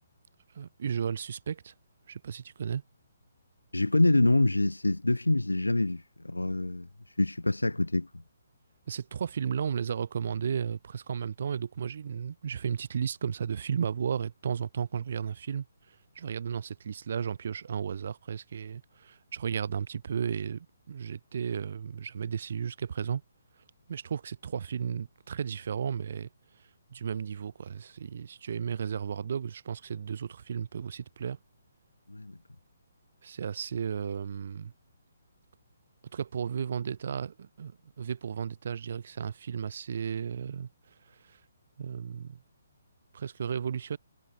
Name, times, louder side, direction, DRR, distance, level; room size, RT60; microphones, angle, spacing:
voice 1, 0.5-1.7 2.1-2.8 8.9-15.6 16.2-23.2 23.9-26.3 26.9-31.4 33.2-34.7 36.1-37.7 38.0-40.7 41.3-41.4 41.8-42.4 43.1-44.0, right 7 dB, 55° right, 0.7 m, -34 dB
voice 2, 3.7-8.1 32.1-32.4, left 2 dB, 85° left, 0.8 m, -26 dB
figure-of-eight pair, 135°, 0 cm